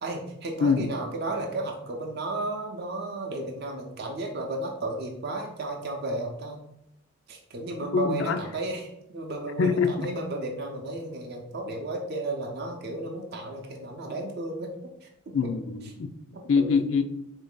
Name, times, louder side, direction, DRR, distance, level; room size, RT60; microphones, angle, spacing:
voice 1, 0.0-6.6 7.3-14.7 15.0-15.4 16.3-16.8, right 2 dB, 50° right, 1 dB, 0.5 m, -33 dB
voice 2, 0.6-0.9 7.9-8.4 9.6-10.1 15.3-16.1 16.5-17.0, left 5 dB, 70° left, 9 dB, 0.4 m, -24 dB
3.9 x 2.6 x 3.7 m, 0.77 s
head